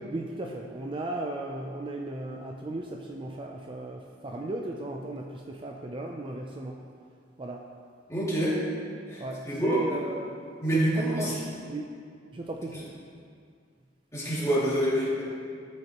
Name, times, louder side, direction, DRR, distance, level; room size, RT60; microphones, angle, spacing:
voice 1, 0.1-6.8 7.4-7.6 9.2-10.3 10.7-11.9 12.3-12.8, right 2 dB, 30° right, 1 dB, 0.4 m, -36 dB
voice 2, 8.1-8.6 9.1-9.8 10.6-11.3 12.7-12.8 14.1-15.2, right 1 dB, 15° left, -8 dB, 2.4 m, -27 dB
13.0 x 6.4 x 3.0 m, 2.2 s
head